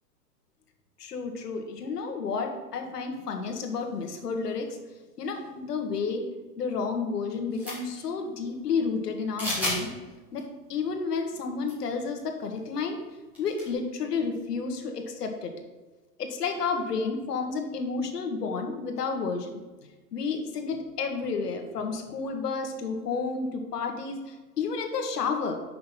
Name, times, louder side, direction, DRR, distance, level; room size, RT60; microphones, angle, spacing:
voice 1, 1.0-4.8 5.2-6.2 6.6-9.9 10.3-13.0 13.4-15.5 16.2-19.6 20.1-25.6, left 4 dB, 70° left, 4 dB, 1.5 m, -31 dB
sound 1, 7.5-8.0 9.4-9.8 10.3-10.4 11.6-11.7 12.0-12.1 13.4-13.7, left 1 dB, 5° right, 0.9 m, -31 dB
6.3 x 5.8 x 5.7 m, 1.2 s
hypercardioid pair, 180°, 48 cm